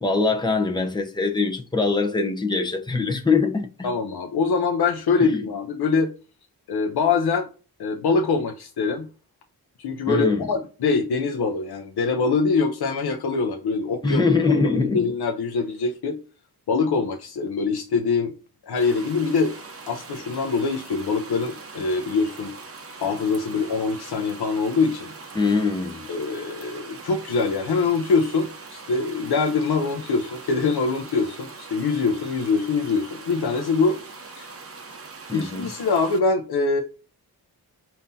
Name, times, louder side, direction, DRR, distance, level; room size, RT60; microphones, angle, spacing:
voice 1, 0.0-3.9 5.2-5.4 10.1-10.5 14.0-15.0 25.3-26.1 35.3-35.7, left 4 dB, 10° left, 0.7 m, -23 dB
voice 2, 3.8-6.1 6.7-7.5 7.8-9.1 9.8-14.2 14.9-16.2 16.7-18.3 18.7-19.6 19.9-22.5 23.0-25.1 26.1-34.0 34.4-34.5 35.3-36.8, left 4 dB, 85° left, 0.7 m, -24 dB
sound 1, 18.8-36.2, right 4 dB, 35° right, 0.8 m, -42 dB
5.4 x 2.7 x 2.6 m
wide cardioid pair, 150°, 38 cm